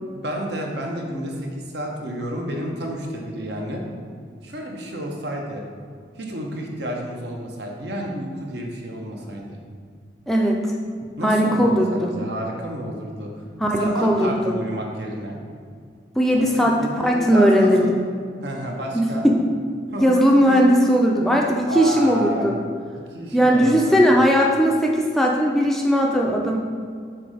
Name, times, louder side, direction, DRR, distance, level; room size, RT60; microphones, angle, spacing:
voice 1, 0.1-3.8 4.4-5.6 6.2-9.6 11.2-13.3 13.8-15.4 16.3-17.9 18.4-19.3 19.9-20.1 20.5-20.6 21.6-22.5 22.9-24.0, right 1 dB, 70° right, 0 dB, 1.0 m, -30 dB
voice 2, 10.3-10.6 11.2-12.1 13.6-14.5 16.2-17.8 18.9-19.4 20.0-22.6 23.3-26.6, equal, ahead, -1 dB, 0.4 m, -18 dB
6.0 x 3.8 x 4.9 m, 2.1 s
head